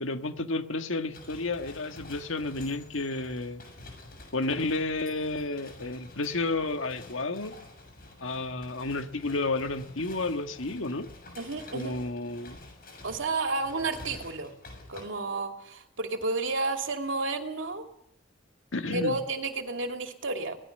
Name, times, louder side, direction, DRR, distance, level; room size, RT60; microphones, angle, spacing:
voice 1, 0.0-3.6 4.3-7.5 8.2-11.1 11.7-12.6 18.7-19.2, left 2 dB, 90° left, 8 dB, 1.7 m, -31 dB
sound 1, 1.1-15.0, left 2 dB, 50° left, 7.3 m, -48 dB
voice 2, 11.4-12.0 13.0-14.5 14.9-17.8 18.9-20.6, right 3 dB, 75° right, 5 dB, 2.7 m, -31 dB
24.0 x 18.5 x 6.7 m, 0.74 s
head